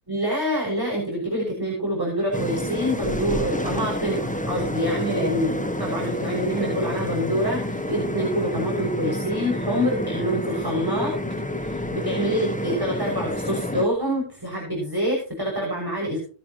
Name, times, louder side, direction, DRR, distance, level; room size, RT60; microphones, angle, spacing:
voice 1, 0.1-11.1 11.6-16.2, equal, 15° right, -2 dB, 6.4 m, -26 dB
sound 1, 2.3-13.8, left 1 dB, 5° left, 0.9 m, -29 dB
19.5 x 11.5 x 3.0 m, 0.37 s
omnidirectional pair, 1.7 m